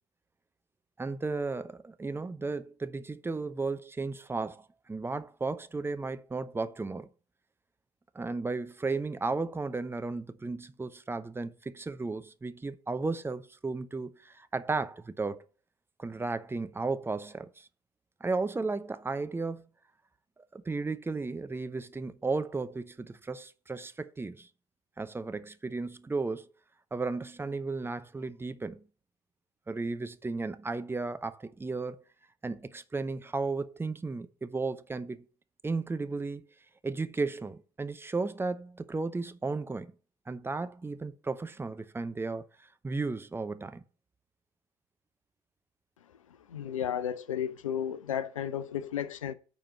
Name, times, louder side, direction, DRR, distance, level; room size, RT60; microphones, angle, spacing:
voice 1, 1.0-7.1 8.1-15.4 16.0-17.7 18.2-19.7 20.5-24.5 25.0-26.5 26.9-28.8 29.7-32.0 32.4-35.2 35.6-36.4 36.8-39.9 40.3-42.5 42.8-43.8, right 3 dB, 15° right, 0.8 m, -34 dB
voice 2, 46.5-49.3, left 9 dB, 75° left, 0.7 m, -33 dB
8.9 x 5.1 x 6.9 m
figure-of-eight pair, 55°, 17 cm